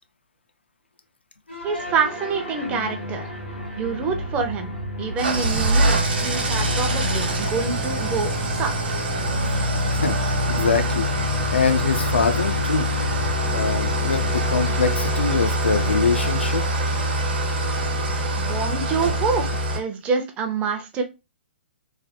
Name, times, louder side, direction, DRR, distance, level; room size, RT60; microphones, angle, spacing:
sound 1, 1.5-19.8, equal, 85° left, 1.3 m, -35 dB
voice 1, 1.6-3.3 3.8-4.7 5.0-8.7 18.4-19.5 19.7-21.0, right 5 dB, 20° right, 6 dB, 0.5 m, -26 dB
Engine starting / Idling, 5.2-19.8, equal, 55° right, 0.9 m, -24 dB
voice 2, 9.9-11.1 11.5-12.9 13.5-16.6, left 4 dB, 70° left, 8 dB, 0.5 m, -23 dB
3.2 x 2.1 x 2.8 m, 0.26 s
figure-of-eight pair, 120°, 6 cm